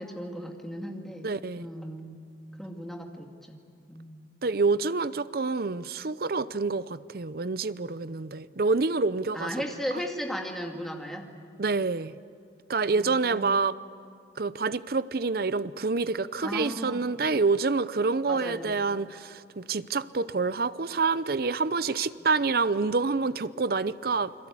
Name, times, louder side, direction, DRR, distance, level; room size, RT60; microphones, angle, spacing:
voice 1, 0.0-2.2 2.6-3.6 3.9-4.3 9.3-11.3 12.9-13.6 16.4-17.0 18.3-18.8, equal, ahead, 1 dB, 2.2 m, -36 dB
voice 2, 1.2-1.7 4.4-9.5 11.6-12.1 12.7-13.7 14.4-24.5, right 4 dB, 60° right, 16 dB, 0.7 m, -27 dB
29.0 x 22.0 x 8.5 m, 2.2 s
head